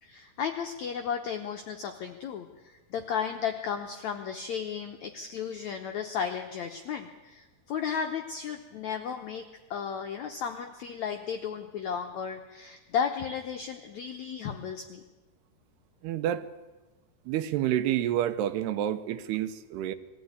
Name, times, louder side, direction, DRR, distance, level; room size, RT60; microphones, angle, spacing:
voice 1, 0.0-15.0, left 7 dB, 90° left, 1.6 m, -34 dB
voice 2, 16.0-16.5 17.3-19.9, right 11 dB, 80° right, 2.9 m, -29 dB
21.5 x 15.0 x 9.6 m
omnidirectional pair, 4.8 m